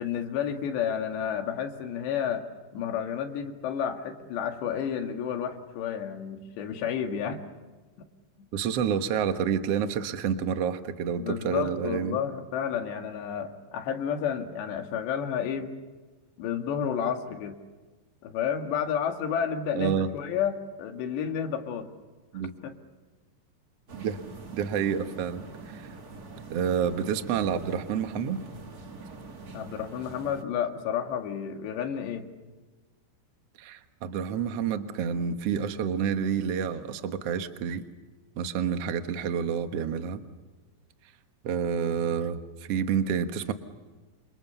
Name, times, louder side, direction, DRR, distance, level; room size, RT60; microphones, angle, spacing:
voice 1, 0.0-2.4 2.7-7.4 11.2-15.7 16.4-17.6 18.2-21.9 22.6-22.7 29.5-32.3, left 8 dB, 75° left, 5 dB, 4.1 m, -31 dB
voice 2, 8.5-12.2 19.7-20.1 22.3-22.5 23.9-24.2 24.5-25.9 26.5-28.4 33.6-37.8 38.4-40.2 41.4-43.5, right 7 dB, 75° right, 8 dB, 1.4 m, -29 dB
sound 1, 23.9-30.4, right 3 dB, 45° right, 1.2 m, -44 dB
28.5 x 27.5 x 7.0 m, 1.3 s
omnidirectional pair, 5.1 m